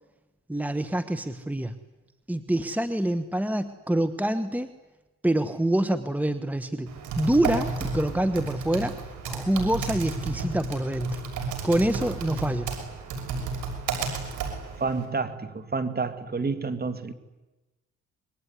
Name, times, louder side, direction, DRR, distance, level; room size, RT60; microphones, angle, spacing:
voice 1, 0.5-1.7 2.3-4.7 5.2-9.0 9.2-11.2 11.6-12.7, right 1 dB, 5° right, 1.4 m, -26 dB
Typing, 6.9-15.1, right 4 dB, 80° right, 6.5 m, -32 dB
voice 2, 14.8-17.1, right 4 dB, 30° right, 2.5 m, -29 dB
26.5 x 22.5 x 9.7 m
cardioid pair, 90°, 30 cm